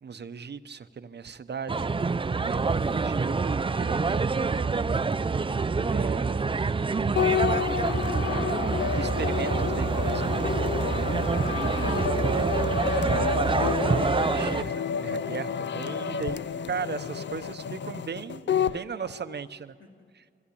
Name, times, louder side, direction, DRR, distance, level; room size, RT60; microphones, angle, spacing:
voice 1, 0.0-1.9 2.4-2.6 2.8-5.0 5.4-5.5 5.9-6.5 8.2-16.4 16.7-18.4 18.7-19.6, right 6 dB, 60° right, 12 dB, 0.8 m, -37 dB
sound 1, 1.7-14.6, right 4 dB, 25° right, 0.4 m, -26 dB
voice 2, 2.5-3.1 15.9-19.4 19.8-20.3, left 2 dB, 85° left, 1 dB, 2.7 m, -51 dB
sound 2, 7.2-18.8, left 7 dB, 65° left, 0.5 m, -30 dB
23.0 x 16.0 x 8.5 m, 2.2 s
wide cardioid pair, 90°, 20 cm